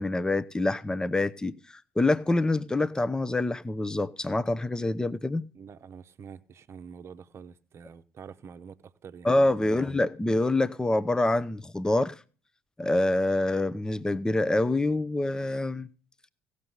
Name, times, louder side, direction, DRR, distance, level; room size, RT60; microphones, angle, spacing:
voice 1, 0.0-5.5 9.2-12.2 12.8-15.9, left 2 dB, 10° left, 0.7 m, -26 dB
voice 2, 5.5-10.0, right 6 dB, 40° right, 0.9 m, -47 dB
16.5 x 6.6 x 5.3 m
figure-of-eight pair, 55°, 7 cm